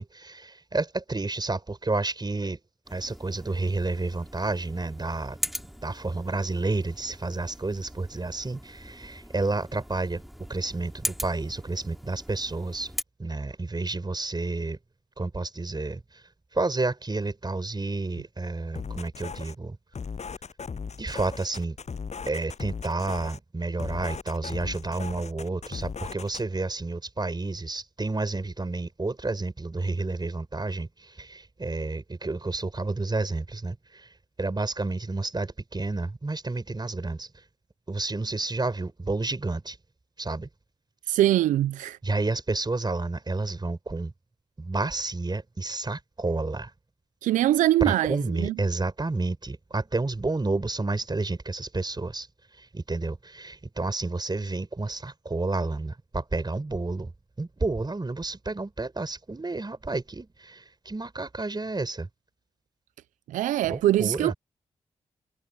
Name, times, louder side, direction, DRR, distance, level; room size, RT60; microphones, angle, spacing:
voice 1, 0.0-2.6 2.9-5.4 5.8-10.2 10.5-12.9 13.2-14.8 15.2-16.2 16.5-19.8 21.0-21.8 22.3-34.1 34.4-37.4 37.9-39.8 40.2-40.5 42.0-44.1 44.6-46.7 47.8-52.3 52.6-57.1 57.4-62.1 63.7-64.3, right 3 dB, 35° right, 5.3 m, -30 dB
sound 1, 2.8-13.0, equal, ahead, 3.1 m, -40 dB
sound 2, 18.8-19.6 19.9-23.4 23.8-26.4, left 5 dB, 60° left, 7.8 m, -37 dB
voice 2, 41.1-42.0 47.2-48.5 63.3-64.3, right 14 dB, 90° right, 0.4 m, -23 dB
supercardioid pair, 40°, 13 cm